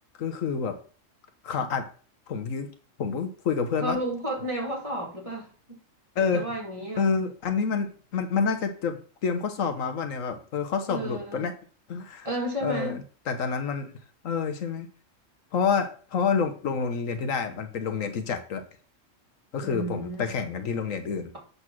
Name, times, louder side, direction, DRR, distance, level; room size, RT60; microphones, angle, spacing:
voice 1, 0.2-0.8 1.4-1.9 2.3-2.7 3.0-4.0 6.1-6.4 7.0-11.5 11.9-12.3 12.6-13.9 14.2-14.9 15.5-18.6 19.5-21.4, left 5 dB, 90° left, 7 dB, 1.4 m, -28 dB
voice 2, 3.8-5.8 6.3-7.1 10.9-11.5 12.2-13.0 19.6-20.4, right 1 dB, 25° right, -3 dB, 2.7 m, -32 dB
7.7 x 4.1 x 6.1 m, 0.41 s
omnidirectional pair, 1.3 m